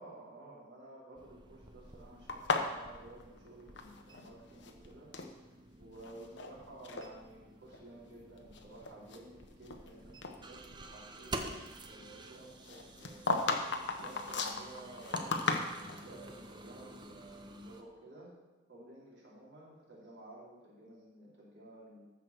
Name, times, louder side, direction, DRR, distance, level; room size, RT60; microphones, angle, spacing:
voice 1, 0.0-5.5 5.8-13.2 14.0-18.3 18.7-22.0, right 2 dB, 55° right, -7 dB, 4.2 m, -53 dB
sound 1, 1.2-17.8, right 2 dB, 20° right, 0.7 m, -50 dB
sound 2, 2.3-4.3 4.5-5.3 6.0-6.5 6.8-7.1 7.7-7.8 8.4-9.9 10.2-10.4 12.6-16.1, left 3 dB, 60° left, 1.0 m, -35 dB
14.0 x 5.2 x 6.2 m, 1.2 s
head